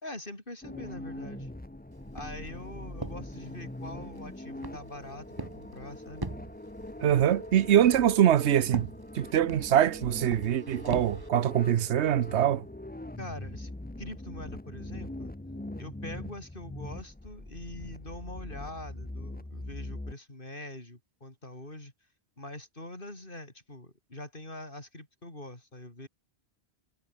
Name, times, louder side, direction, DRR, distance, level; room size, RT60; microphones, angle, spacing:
voice 1, 0.0-1.5 2.1-6.3 13.2-13.7 14.0-15.3 15.8-21.9 22.4-26.1, left 1 dB, 50° left, 5.9 m, -44 dB
sound 1, 0.6-20.1, left 1 dB, 10° left, 0.9 m, -42 dB
Walk footsteps, 1.9-11.3, right 3 dB, 20° right, 1.1 m, -44 dB
voice 2, 7.0-8.9 9.1-12.7, right 10 dB, 80° right, 1.1 m, -23 dB
omnidirectional pair, 1.1 m